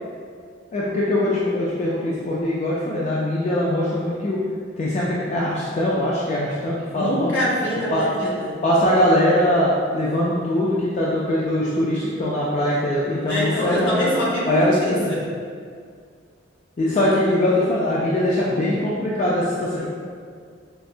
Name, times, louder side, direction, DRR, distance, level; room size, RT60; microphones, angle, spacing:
voice 1, 0.7-4.4 4.8-7.3 7.9-8.1 8.6-14.1 14.5-15.1 16.8-19.9, left 1 dB, 35° left, -6 dB, 0.3 m, -22 dB
voice 2, 6.9-8.5 13.3-15.3, equal, 70° left, -7 dB, 1.0 m, -24 dB
4.5 x 2.0 x 2.6 m, 2.1 s
head